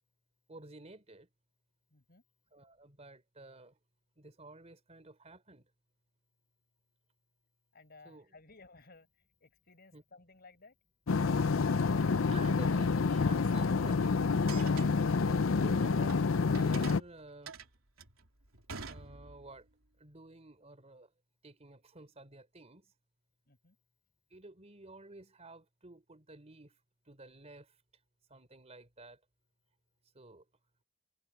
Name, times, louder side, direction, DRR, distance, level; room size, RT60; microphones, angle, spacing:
voice 1, 0.5-1.3 2.5-3.8 4.2-5.7 8.0-8.4 9.9-10.0 12.3-14.3 15.2-17.6 18.9-19.7 20.0-21.1 21.4-22.9 24.3-26.8 27.1-27.8 28.3-29.2 30.1-30.4, right 2 dB, 30° right, 3.9 m, -52 dB
voice 2, 1.9-2.2 7.7-9.1 9.4-10.7 23.5-23.8, left 3 dB, 50° left, 7.2 m, -58 dB
sound 1, 11.1-17.0, left 4 dB, 70° left, 0.6 m, -28 dB
sound 2, 14.5-16.2 16.5-19.6, right 5 dB, 90° right, 3.4 m, -47 dB
head